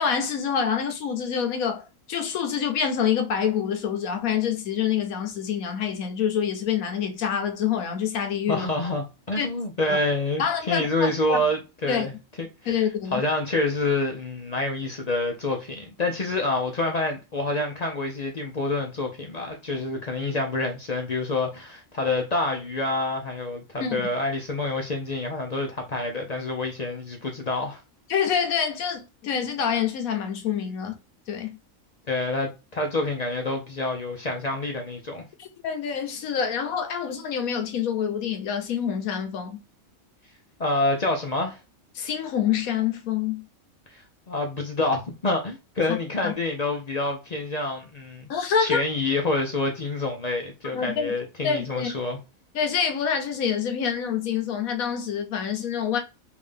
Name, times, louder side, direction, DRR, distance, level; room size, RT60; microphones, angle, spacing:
voice 1, 0.0-8.7 9.4-9.5 9.9-10.0 10.4-11.4 11.9-12.1 12.7-13.2 23.8-24.0 28.1-30.9 31.3-31.6 35.4-39.6 41.9-43.5 45.9-46.0 46.2-46.3 48.3-48.8 50.7-51.1 51.4-51.9 52.5-56.0, left 7 dB, 80° left, 1.2 m, -26 dB
voice 2, 8.5-12.1 12.4-12.8 13.1-27.8 32.1-35.2 40.6-41.6 43.9-44.0 44.3-48.3 48.6-52.2, left 2 dB, 50° left, 0.4 m, -27 dB
3.6 x 2.6 x 3.3 m
omnidirectional pair, 1.5 m